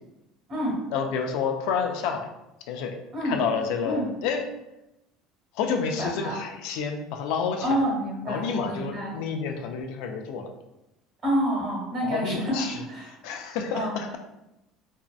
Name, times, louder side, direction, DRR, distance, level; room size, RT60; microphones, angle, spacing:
voice 1, 0.9-2.3 2.7-3.0 3.2-4.5 5.5-7.8 8.3-10.5 12.0-14.2, left 6 dB, 75° left, 5 dB, 0.3 m, -29 dB
voice 2, 6.0-6.3 7.6-9.2 11.2-13.4 13.7-14.0, equal, 40° right, -3 dB, 1.1 m, -28 dB
2.6 x 2.1 x 2.3 m, 0.92 s
supercardioid pair, 115°, 0 cm